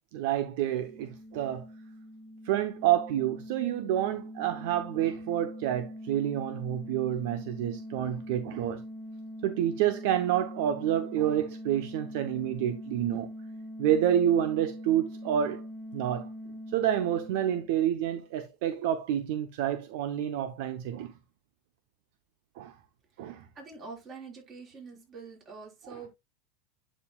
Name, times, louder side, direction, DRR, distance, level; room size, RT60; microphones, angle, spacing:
voice 1, 0.1-1.6 2.4-8.8 9.4-13.3 13.8-15.6 15.9-16.3 16.7-21.1 22.6-22.7 23.2-23.5 25.8-26.0, right 11 dB, 70° right, 0.8 m, -28 dB
sound 1, 0.6-18.1, equal, 5° left, 1.3 m, -43 dB
voice 2, 23.2-26.1, right 4 dB, 35° right, 5.6 m, -46 dB
11.0 x 5.1 x 2.3 m
supercardioid pair, 110°, 0 cm